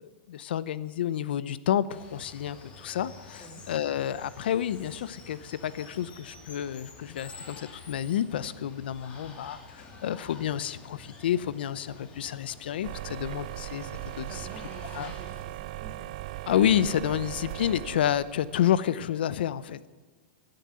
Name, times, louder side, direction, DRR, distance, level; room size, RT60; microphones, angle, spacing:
voice 1, 0.0-13.9 14.2-14.4 15.0-15.1 16.4-19.9, left 10 dB, 70° left, 18 dB, 0.6 m, -29 dB
Water, 1.9-15.4, left 3 dB, 20° left, 2.4 m, -49 dB
sound 1, 12.8-18.8, right 15 dB, 45° right, 0.5 m, -39 dB
voice 2, 14.2-16.1, right 3 dB, 20° right, 3 dB, 2.3 m, -48 dB
14.0 x 10.5 x 9.6 m, 1.3 s
supercardioid pair, 160°, 6 cm